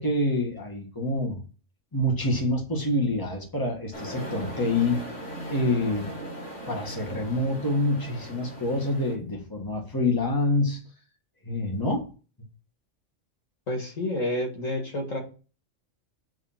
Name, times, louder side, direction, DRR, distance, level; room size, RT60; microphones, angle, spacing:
voice 1, 0.0-1.4 1.9-6.1 6.7-10.8 11.4-12.1, left 1 dB, 15° left, 1 dB, 1.6 m, -27 dB
sound 1, 3.9-9.1, right 1 dB, 65° left, 3.3 m, -38 dB
voice 2, 13.7-15.2, left 1 dB, 90° left, 1 dB, 2.2 m, -29 dB
7.7 x 3.3 x 5.7 m, 0.37 s
omnidirectional pair, 1.3 m